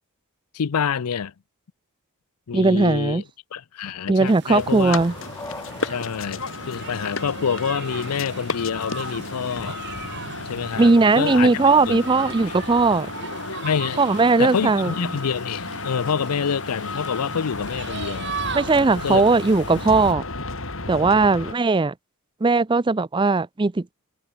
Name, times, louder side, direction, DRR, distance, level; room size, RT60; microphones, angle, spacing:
voice 1, 0.5-1.3 2.5-3.2 3.5-5.0 5.8-9.8 10.5-12.0 13.6-14.0 14.4-18.4 19.0-19.2 19.7-19.8, left 6 dB, 85° left, 0.5 m, -27 dB
voice 2, 2.5-3.2 4.1-5.1 10.8-13.1 14.0-15.1 18.5-20.2 20.9-21.9 22.4-23.9, right 3 dB, 20° right, 0.4 m, -18 dB
sound 1, 4.3-20.1, right 6 dB, 50° right, 1.5 m, -39 dB
sound 2, 4.4-8.0, left 2 dB, 15° left, 1.4 m, -42 dB
sound 3, 4.5-21.5, left 3 dB, 60° left, 4.2 m, -33 dB
head